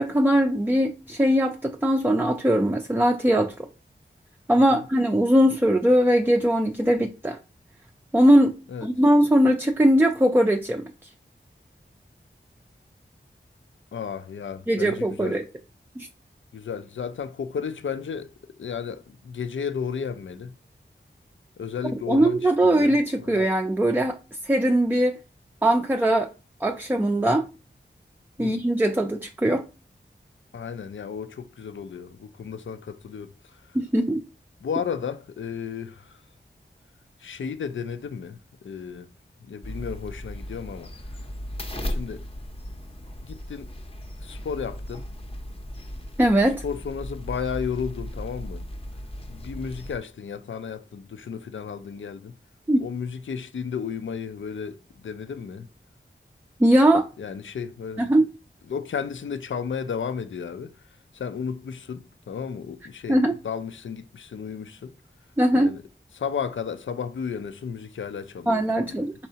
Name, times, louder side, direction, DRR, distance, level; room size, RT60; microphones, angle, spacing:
voice 1, 0.0-3.5 4.5-7.4 8.1-8.6 8.8-10.8 14.7-15.4 16.0-16.1 22.1-24.2 24.4-25.2 25.6-26.3 26.6-27.5 28.4-29.6 33.7-34.2 46.2-46.6 52.7-52.8 56.6-57.1 58.1-58.2 63.1-63.3 65.4-65.7 68.5-69.1, right 1 dB, 10° right, 0.4 m, -20 dB
voice 2, 13.9-15.4 16.5-20.5 21.6-23.4 28.4-28.6 30.5-33.8 34.6-36.2 37.2-39.1 39.4-40.9 41.8-42.2 43.2-43.7 44.2-45.1 46.6-48.7 49.3-52.3 52.8-55.7 57.2-58.1 58.7-60.8 61.1-64.9 65.5-65.8 66.1-69.1, left 6 dB, 85° left, 0.4 m, -33 dB
sound 1, 39.6-50.0, equal, 30° left, 0.6 m, -36 dB
4.5 x 4.1 x 2.8 m
wide cardioid pair, 75°, 19 cm